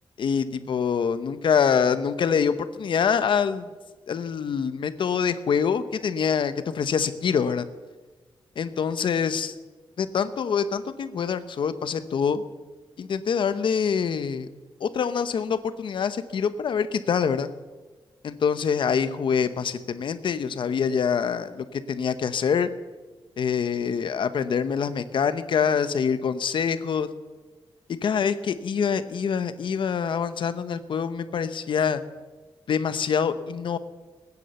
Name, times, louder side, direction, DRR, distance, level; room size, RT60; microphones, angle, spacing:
voice 1, 0.2-3.7 4.1-7.6 8.6-9.5 10.0-12.4 13.0-14.5 14.8-17.5 18.2-22.7 23.4-27.1 28.0-32.0 32.7-33.8, left 6 dB, 60° left, 12 dB, 0.9 m, -25 dB
20.0 x 9.8 x 6.9 m, 1.3 s
wide cardioid pair, 175°, 9 cm